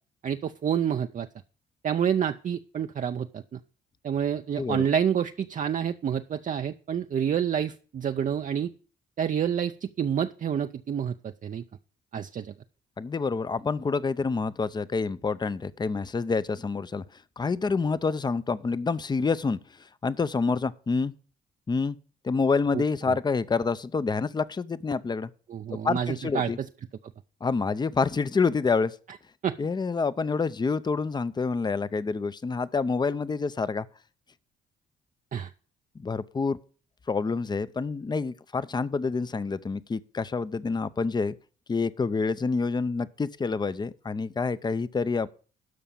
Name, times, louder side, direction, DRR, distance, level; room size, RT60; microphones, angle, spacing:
voice 1, 0.2-1.3 1.8-3.6 4.0-8.7 9.2-11.6 12.1-12.5 22.7-22.8 25.5-26.5 29.4-29.6 35.3-35.5, right 8 dB, 40° right, 0.5 m, -28 dB
voice 2, 4.6-4.9 13.0-21.1 21.7-22.0 22.2-25.3 25.7-26.6 27.4-29.0 29.6-33.9 36.0-36.6 37.1-41.3 41.7-45.3, left 4 dB, 20° left, 0.6 m, -27 dB
12.5 x 5.0 x 7.2 m
cardioid pair, 90°, 20 cm